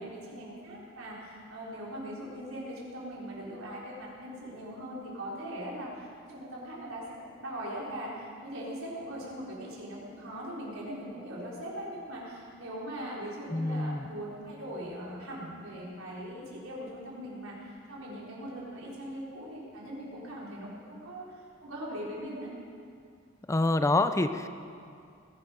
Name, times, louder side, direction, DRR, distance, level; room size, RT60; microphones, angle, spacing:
voice 1, 0.0-22.5, equal, 85° right, -5 dB, 4.2 m, -40 dB
voice 2, 13.5-14.1 23.5-24.5, left 2 dB, 15° left, 10 dB, 0.4 m, -26 dB
20.0 x 11.5 x 5.1 m, 2.3 s
head